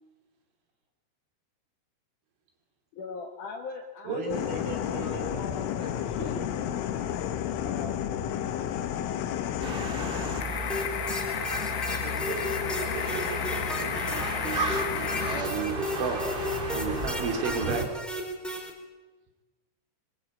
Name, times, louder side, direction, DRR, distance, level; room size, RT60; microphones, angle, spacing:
voice 1, 2.9-6.5 7.6-8.1, left 5 dB, 60° left, 3 dB, 2.3 m, -40 dB
voice 2, 4.0-5.5 11.9-14.1, right 3 dB, 50° right, 3 dB, 6.4 m, -38 dB
sound 1, 4.3-15.4, left 10 dB, 80° left, 3.8 m, -32 dB
sound 2, 9.6-17.8, right 1 dB, 20° right, 1.5 m, -34 dB
sound 3, 10.7-18.7, left 1 dB, ahead, 3.6 m, -34 dB
voice 3, 15.2-16.2 16.7-17.9, right 5 dB, 70° right, 3 dB, 5.3 m, -31 dB
25.5 x 22.5 x 9.0 m, 1.2 s
omnidirectional pair, 5.7 m